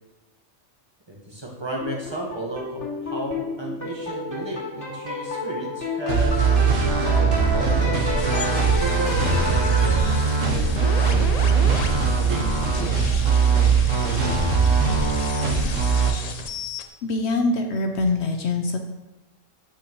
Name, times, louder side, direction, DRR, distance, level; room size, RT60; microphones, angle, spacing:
voice 1, 1.1-6.5 7.4-12.5, right 1 dB, 25° right, -3 dB, 1.1 m, -34 dB
sound 1, 1.8-10.7, left 2 dB, 15° left, 2.7 m, -30 dB
sound 2, 6.1-16.1, right 5 dB, 85° right, 1.4 m, -21 dB
sound 3, 8.2-16.8, left 5 dB, 50° left, 0.5 m, -35 dB
voice 2, 17.0-18.8, left 2 dB, 65° left, 5 dB, 0.9 m, -23 dB
8.7 x 5.4 x 3.0 m, 0.98 s
omnidirectional pair, 1.3 m